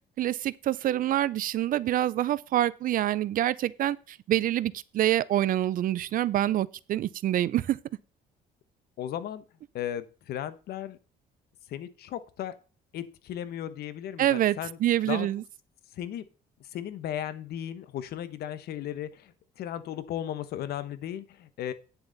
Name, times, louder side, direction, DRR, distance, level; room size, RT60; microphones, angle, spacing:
voice 1, 0.2-7.8 14.2-15.4, right 12 dB, 55° right, 0.5 m, -26 dB
voice 2, 9.0-9.4 9.7-11.0 11.7-12.5 12.9-14.8 15.1-15.3 16.0-16.2 16.7-19.3 19.6-21.7, left 11 dB, 70° left, 1.1 m, -35 dB
9.9 x 6.8 x 4.0 m
cardioid pair, 110°, 17 cm